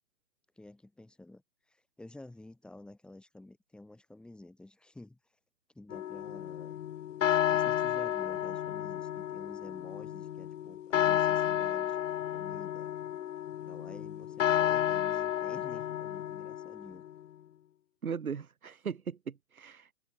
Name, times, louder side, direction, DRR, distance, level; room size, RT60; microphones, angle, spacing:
voice 1, 0.6-1.4 1.7-5.2 5.7-6.7 7.5-12.9 13.7-17.0, left 2 dB, ahead, 1.9 m, -51 dB
sound 1, 5.9-17.1, left 11 dB, 60° left, 0.5 m, -32 dB
voice 2, 18.0-19.9, right 6 dB, 80° right, 1.7 m, -38 dB
open air
hypercardioid pair, 140°, 43 cm